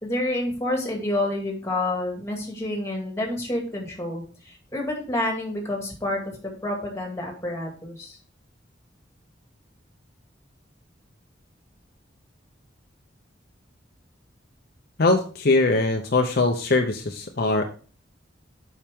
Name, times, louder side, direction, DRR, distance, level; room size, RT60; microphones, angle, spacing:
voice 1, 0.0-8.2, left 1 dB, 15° left, 1 dB, 2.0 m, -29 dB
voice 2, 15.0-17.6, left 3 dB, 55° left, 4 dB, 0.7 m, -21 dB
7.4 x 5.7 x 3.5 m, 0.38 s
head